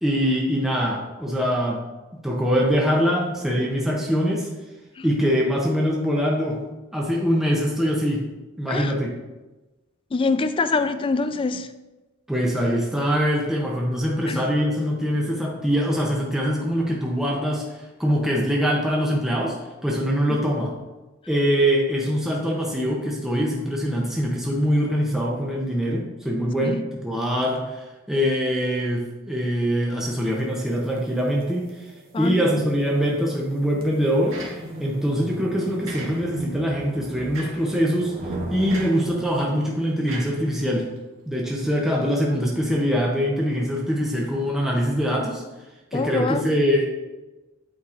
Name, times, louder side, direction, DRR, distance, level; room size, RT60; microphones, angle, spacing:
voice 1, 0.0-1.8 2.2-4.5 5.0-6.6 6.9-8.3 8.6-9.1 12.3-17.6 18.0-19.6 19.8-20.7 21.3-31.9 32.2-34.4 34.8-38.1 38.5-40.9 41.3-45.4 45.9-46.9, equal, ahead, -3 dB, 0.6 m, -23 dB
voice 2, 10.1-11.7 14.3-14.5 26.6-26.8 32.1-32.6 45.9-46.5, left 3 dB, 25° left, 11 dB, 0.3 m, -25 dB
sound 1, 30.4-39.7, right 1 dB, 45° right, 1.0 m, -38 dB
sound 2, 34.3-35.0 35.9-36.5 37.3-37.8 38.7-39.1 40.1-41.0, right 2 dB, 75° right, 1.6 m, -38 dB
8.4 x 4.6 x 2.5 m, 1.1 s
head